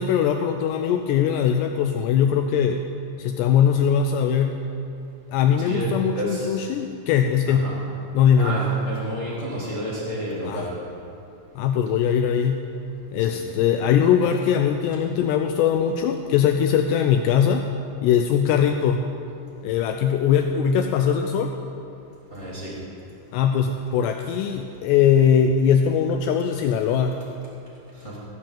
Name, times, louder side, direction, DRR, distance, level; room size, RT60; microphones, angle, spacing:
voice 1, 0.0-2.8 3.2-4.7 5.3-7.8 8.1-8.6 10.5-10.7 11.6-12.7 13.1-17.7 18.0-19.1 19.6-21.6 23.3-27.2, left 8 dB, 85° left, 6 dB, 2.5 m, -21 dB
voice 2, 5.6-5.9 6.1-6.6 7.5-7.8 8.4-10.7 13.3-13.4 22.3-22.7 28.0-28.2, equal, 30° left, -7 dB, 1.3 m, -31 dB
17.0 x 7.4 x 7.3 m, 2.6 s
omnidirectional pair, 5.4 m